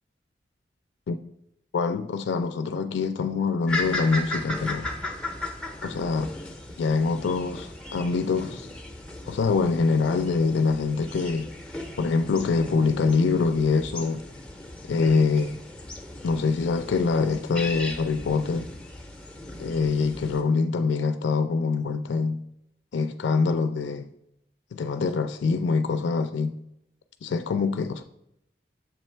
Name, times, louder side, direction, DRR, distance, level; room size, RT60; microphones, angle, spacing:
voice 1, 1.7-4.9 5.8-6.3 6.8-8.7 9.3-11.5 12.0-14.2 14.9-15.6 16.2-18.7 19.6-22.4 22.9-24.1 24.7-26.6 27.2-28.0, left 4 dB, 80° left, 0.4 m, -24 dB
sound 1, 3.7-20.4, left 2 dB, 5° left, 0.5 m, -37 dB
7.0 x 3.3 x 4.3 m
head